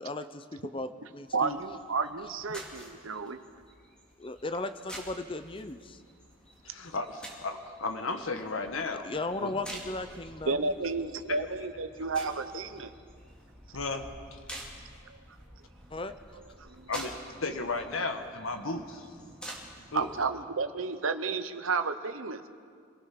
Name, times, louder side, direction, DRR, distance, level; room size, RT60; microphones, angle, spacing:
voice 1, 0.0-1.6 4.2-6.0 9.0-10.7 15.9-16.2, left 2 dB, 25° left, 10 dB, 0.7 m, -36 dB
sound 1, 1.3-20.3, right 1 dB, 5° left, 2.6 m, -49 dB
voice 2, 1.3-3.4 10.5-12.9 16.6-16.9 19.9-22.4, right 4 dB, 80° right, 9 dB, 0.9 m, -32 dB
voice 3, 6.6-9.1 9.4-9.5 11.3-11.4 13.7-14.4 16.9-17.1 17.4-19.1 19.9-20.1, left 3 dB, 85° left, 6 dB, 1.5 m, -34 dB
26.0 x 18.0 x 6.1 m, 2.1 s
head